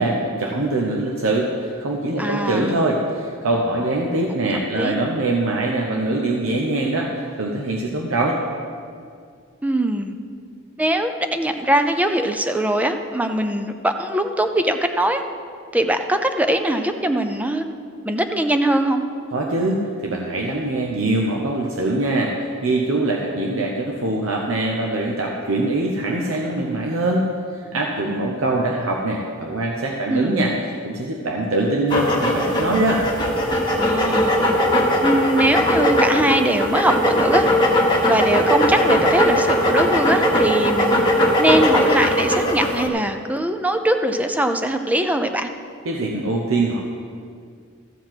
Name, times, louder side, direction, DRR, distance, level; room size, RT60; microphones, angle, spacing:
voice 1, 0.0-8.4 19.3-30.5 30.8-33.1 45.9-46.8, right 2 dB, 75° right, -1 dB, 0.9 m, -23 dB
voice 2, 2.2-2.7 4.7-4.9 9.6-10.1 10.8-15.2 15.7-17.6 18.0-19.0 30.1-30.5 33.8-34.3 35.0-37.4 38.0-41.0 41.4-45.5, right 1 dB, 5° right, 6 dB, 0.5 m, -21 dB
sound 1, 31.9-42.9, left 1 dB, 20° left, 1.4 m, -19 dB
13.5 x 4.7 x 7.7 m, 2.2 s
head